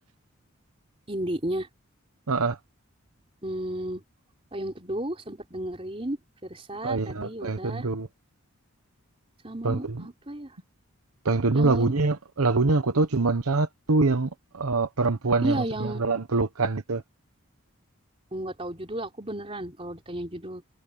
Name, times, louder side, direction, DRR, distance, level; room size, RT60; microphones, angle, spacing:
voice 1, 1.1-1.7 3.4-4.0 4.5-6.2 6.4-7.9 9.4-10.5 11.5-11.9 15.4-16.0 18.3-20.6, right 1 dB, 25° right, 4.0 m, -33 dB
voice 2, 6.8-8.1 9.6-9.8 11.3-14.3 14.6-15.6 16.0-17.0, right 3 dB, 85° right, 1.0 m, -24 dB
head